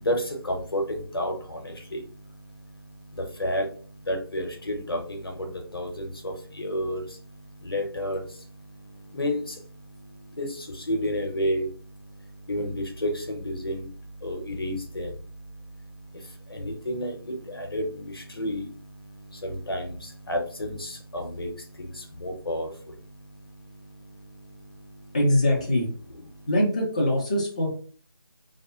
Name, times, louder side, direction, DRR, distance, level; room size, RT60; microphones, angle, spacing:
voice 1, 0.0-25.2 26.2-26.5, equal, 70° left, 3 dB, 0.7 m, -32 dB
voice 2, 25.1-25.9 26.5-27.7, left 1 dB, 20° left, -2 dB, 0.4 m, -22 dB
2.6 x 2.1 x 2.3 m, 0.43 s
figure-of-eight pair, 165°, 13 cm